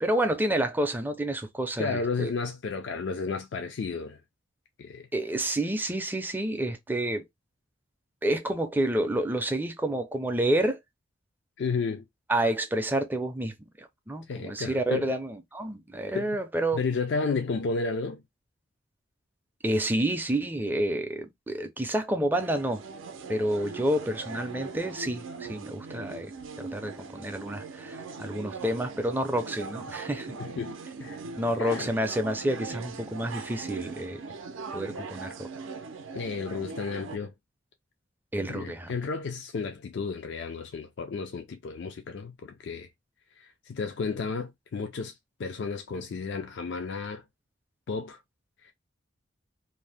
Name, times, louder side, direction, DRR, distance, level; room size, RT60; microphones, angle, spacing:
voice 1, 0.0-2.3 5.1-7.2 8.2-10.8 12.3-16.8 19.6-22.8 23.3-26.3 26.6-30.3 31.4-34.2 34.7-35.5 38.3-38.9, right 1 dB, 10° right, 0.4 m, -29 dB
voice 2, 1.8-4.2 4.8-5.1 11.6-12.0 14.3-15.1 16.1-16.3 16.7-18.2 30.4-30.7 31.0-31.2 31.6-31.9 36.1-37.3 38.5-42.9 43.4-47.2 47.9-48.2 48.6-48.7, left 4 dB, 60° left, 0.3 m, -32 dB
sound 1, 22.3-37.2, right 4 dB, 80° right, 0.5 m, -40 dB
2.6 x 2.0 x 3.3 m
head